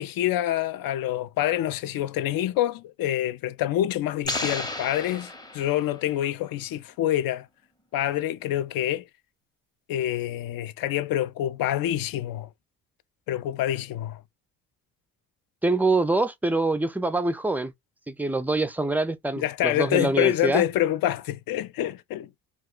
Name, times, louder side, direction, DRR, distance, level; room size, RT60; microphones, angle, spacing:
voice 1, 0.0-7.5 7.9-9.0 9.9-12.5 13.3-14.2 19.4-22.3, left 12 dB, 60° left, 0.5 m, -26 dB
sound 1, 4.2-6.1, left 2 dB, 10° left, 0.7 m, -33 dB
voice 2, 15.6-17.7 18.1-20.6, right 2 dB, 5° right, 0.3 m, -25 dB
2.4 x 2.2 x 3.6 m
cardioid pair, 80°, 40 cm